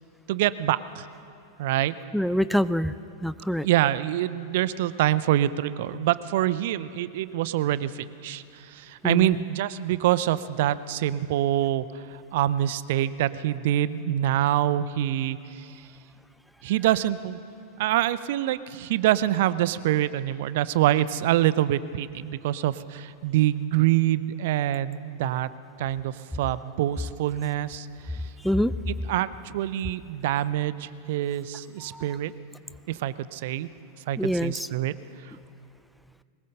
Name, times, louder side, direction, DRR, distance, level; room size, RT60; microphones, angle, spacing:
voice 1, 0.3-1.1 1.6-2.0 3.6-15.8 16.6-17.4 17.8-25.5 25.8-27.9 29.1-32.3 32.9-33.7 34.1-34.9, right 13 dB, 50° right, 17 dB, 0.6 m, -25 dB
voice 2, 2.1-2.9 3.2-3.7 9.0-9.4 28.4-28.7 31.8-32.1 34.2-34.7, equal, ahead, 14 dB, 0.5 m, -25 dB
21.5 x 20.0 x 6.6 m, 2.5 s
figure-of-eight pair, 90°, 0 cm